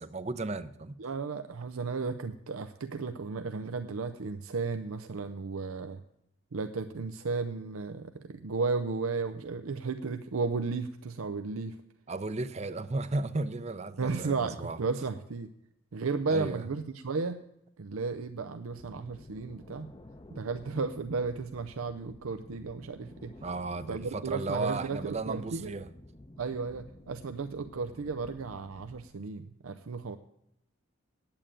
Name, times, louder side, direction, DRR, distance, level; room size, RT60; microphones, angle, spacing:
voice 1, 0.0-1.0 12.1-14.8 16.3-16.7 23.4-25.9, right 3 dB, 30° right, 13 dB, 0.5 m, -34 dB
voice 2, 1.0-6.0 6.5-11.8 14.0-15.5 15.9-17.4 17.8-19.9 20.3-23.3 23.9-25.7 26.4-30.2, right 4 dB, 90° right, 9 dB, 0.6 m, -34 dB
sound 1, 18.7-29.1, left 1 dB, 20° left, 0.6 m, -52 dB
9.0 x 8.8 x 8.7 m, 0.82 s
head